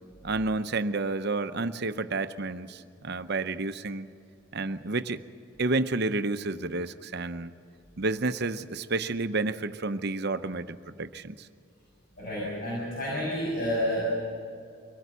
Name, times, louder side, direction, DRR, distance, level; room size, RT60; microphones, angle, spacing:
voice 1, 0.2-4.1 4.5-5.2 5.6-7.5 8.0-11.5, right 3 dB, 50° right, 10 dB, 0.8 m, -30 dB
voice 2, 12.2-14.0, equal, 45° left, -6 dB, 6.4 m, -30 dB
24.0 x 18.0 x 8.2 m, 2.3 s
head